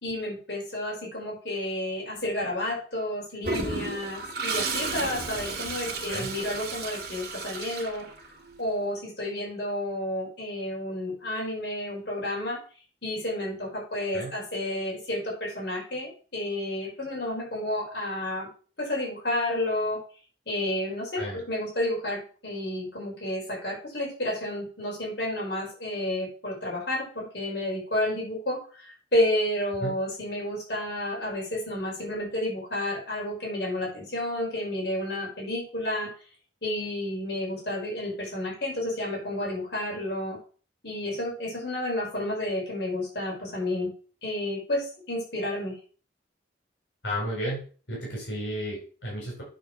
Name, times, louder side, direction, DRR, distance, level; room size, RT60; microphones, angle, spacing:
voice 1, 0.0-8.1 8.6-12.6 13.0-18.5 18.8-20.0 20.5-36.1 36.6-40.4 40.8-43.9 44.2-45.8, left 1 dB, 65° left, -3 dB, 5.0 m, -31 dB
Toilet flush, 3.4-8.5, right 3 dB, 55° right, 2.2 m, -33 dB
voice 2, 5.9-6.3 14.1-14.3 21.2-21.4 29.8-29.9 47.0-47.6 47.9-49.4, equal, 80° left, -3 dB, 4.7 m, -33 dB
9.0 x 4.6 x 6.3 m, 0.39 s
head